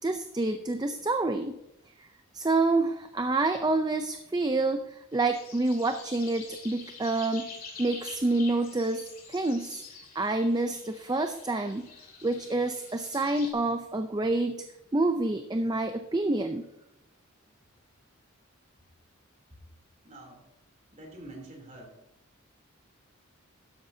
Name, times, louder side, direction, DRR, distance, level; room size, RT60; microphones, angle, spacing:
voice 1, 0.0-1.5 2.3-7.5 7.8-9.8 10.2-11.9 12.2-14.6 14.9-16.7, right 2 dB, 20° right, 7 dB, 0.4 m, -28 dB
sound 1, 5.1-13.5, left 4 dB, 40° left, 2.6 m, -47 dB
voice 2, 20.0-20.5 20.9-22.0, right 2 dB, 35° right, 1 dB, 3.1 m, -46 dB
13.0 x 10.5 x 2.7 m, 0.89 s
head